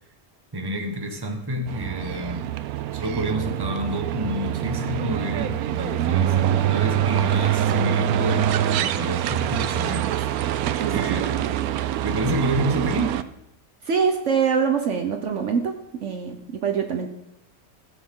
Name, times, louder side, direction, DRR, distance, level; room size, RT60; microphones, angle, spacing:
voice 1, 0.5-2.5 2.9-11.5 12.0-13.1, right 1 dB, 15° right, 3 dB, 1.2 m, -29 dB
sound 1, 1.7-13.2, right 10 dB, 85° right, 1.1 m, -24 dB
voice 2, 10.8-11.2 13.8-17.1, right 6 dB, 60° right, 5 dB, 1.1 m, -24 dB
17.0 x 7.1 x 3.8 m, 0.80 s
omnidirectional pair, 1.5 m